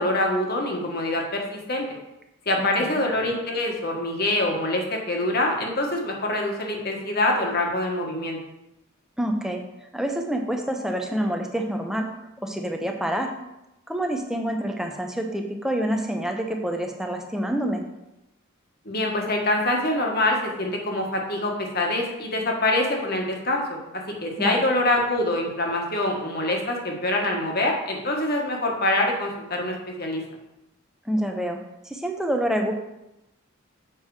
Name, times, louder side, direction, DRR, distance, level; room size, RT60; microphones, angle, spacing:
voice 1, 0.0-1.9 2.4-8.4 18.8-23.8 24.2-30.2, left 1 dB, 45° left, 1 dB, 1.6 m, -25 dB
voice 2, 2.6-3.0 9.2-9.6 9.9-12.1 12.4-13.3 13.9-17.8 24.4-24.6 31.1-31.6 31.8-32.7, right 1 dB, ahead, 3 dB, 0.8 m, -27 dB
7.6 x 5.9 x 4.9 m, 0.91 s
head